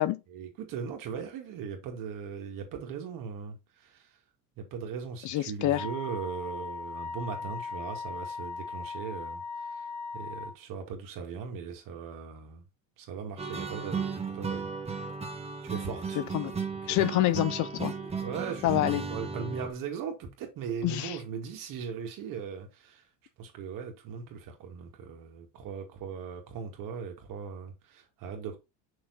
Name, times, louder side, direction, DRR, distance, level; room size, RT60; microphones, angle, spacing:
voice 1, 0.3-4.1 4.6-9.9 10.1-12.6 13.0-14.1 14.3-14.7 15.6-16.2 16.8-17.0 18.2-18.8 19.1-23.0 23.4-28.6, right 6 dB, 55° right, 2.4 m, -39 dB
voice 2, 5.2-5.9 16.2-16.5 16.9-17.9 18.6-19.0 20.8-21.2, left 15 dB, 50° left, 0.5 m, -27 dB
Wind instrument woodwind instrument, 5.7-10.6, left 4 dB, 85° left, 2.8 m, -38 dB
sound 1, 13.4-19.7, right 5 dB, 15° right, 1.2 m, -35 dB
6.3 x 4.5 x 4.1 m
cardioid pair, 140°, 38 cm